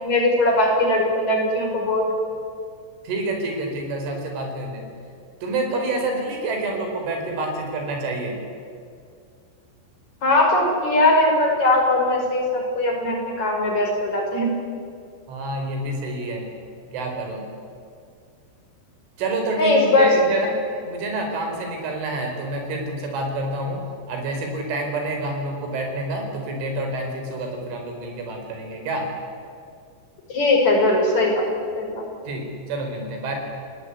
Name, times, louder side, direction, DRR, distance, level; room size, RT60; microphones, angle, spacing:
voice 1, 0.0-2.3 10.2-14.5 19.6-20.1 20.4-20.5 30.3-31.4 31.8-32.0, left 2 dB, 35° left, 0 dB, 6.5 m, -20 dB
voice 2, 3.1-4.8 5.4-8.4 15.3-16.5 16.9-17.4 19.2-23.8 24.1-29.1 32.3-33.4, right 2 dB, 80° right, 3 dB, 7.2 m, -28 dB
29.0 x 19.0 x 9.9 m, 2.3 s
omnidirectional pair, 5.5 m